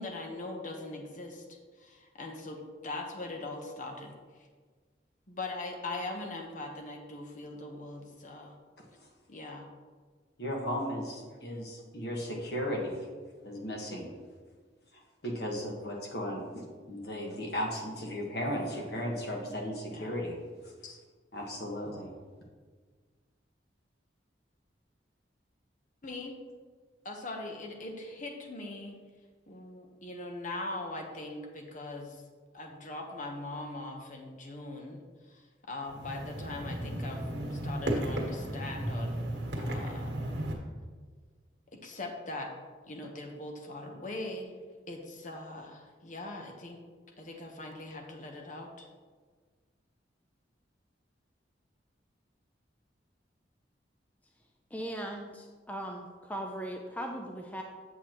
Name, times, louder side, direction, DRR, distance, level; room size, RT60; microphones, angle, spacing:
voice 1, 0.0-1.4 1.7-4.5 5.3-8.6 9.3-9.7 19.9-20.2 20.8-21.0 26.0-26.4 27.0-29.0 29.5-32.2 32.5-39.2 39.5-40.2 41.7-42.5 42.8-44.5 44.9-46.8 47.2-48.9, left 2 dB, 45° left, 2 dB, 1.0 m, -41 dB
voice 2, 10.4-13.0 13.4-14.1 15.2-20.3 21.3-22.1, equal, 60° left, 0 dB, 1.5 m, -35 dB
sound 1, 35.9-40.5, right 1 dB, 75° right, 1.5 m, -34 dB
voice 3, 54.7-57.6, right 1 dB, 10° left, 2 dB, 0.4 m, -38 dB
8.3 x 7.0 x 3.0 m, 1.5 s
head